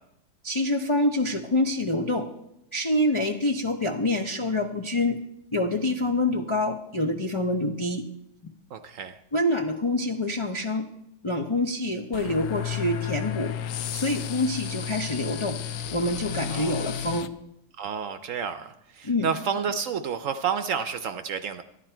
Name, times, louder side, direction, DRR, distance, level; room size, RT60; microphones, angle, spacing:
voice 1, 0.4-2.3 2.7-5.2 5.5-8.0 9.3-10.9 11.2-13.5 13.9-15.6 15.9-17.3 19.0-19.3, left 1 dB, 50° left, 2 dB, 0.3 m, -26 dB
voice 2, 8.7-9.2 16.5-16.8 17.8-21.6, right 6 dB, 65° right, 9 dB, 0.9 m, -30 dB
sound 1, 12.1-17.3, left 9 dB, 70° left, 0.8 m, -32 dB
12.5 x 10.5 x 4.4 m, 0.80 s
omnidirectional pair, 1.7 m